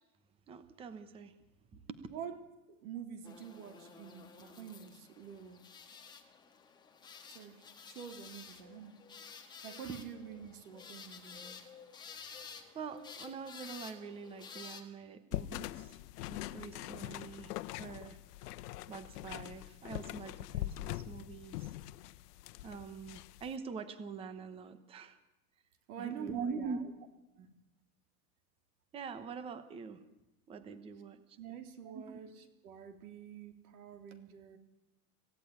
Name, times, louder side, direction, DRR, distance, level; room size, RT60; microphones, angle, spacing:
voice 1, 0.5-1.3 1.7-2.0 9.9-10.0 12.7-16.0 16.3-17.5 17.8-18.2 18.9-21.7 22.6-25.2 26.0-27.1 28.9-30.0 30.5-31.4 31.8-32.2, right 5 dB, 10° right, 12 dB, 0.9 m, -44 dB
voice 2, 2.7-5.6 7.3-7.6 7.9-9.0 9.6-11.6 25.9-26.8 27.4-27.5 31.4-34.6, right 8 dB, 70° right, 8 dB, 3.6 m, -47 dB
sound 1, 3.2-14.8, left 6 dB, 10° left, 1.5 m, -52 dB
sound 2, 15.3-23.5, left 15 dB, 85° left, 1.0 m, -43 dB
26.5 x 16.5 x 9.7 m, 0.97 s
supercardioid pair, 180°, 46 cm